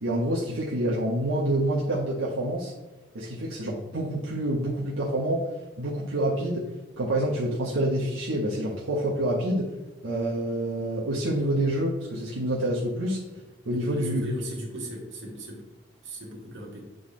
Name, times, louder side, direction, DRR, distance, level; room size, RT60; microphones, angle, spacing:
voice 1, 0.0-2.7 3.1-5.4 5.8-6.6 7.0-9.7 10.0-13.2 13.6-14.4, right 1 dB, 85° right, -5 dB, 1.1 m, -27 dB
voice 2, 13.7-15.6 16.0-16.8, right 1 dB, 70° right, -2 dB, 2.0 m, -36 dB
8.0 x 3.9 x 3.8 m, 1.1 s
head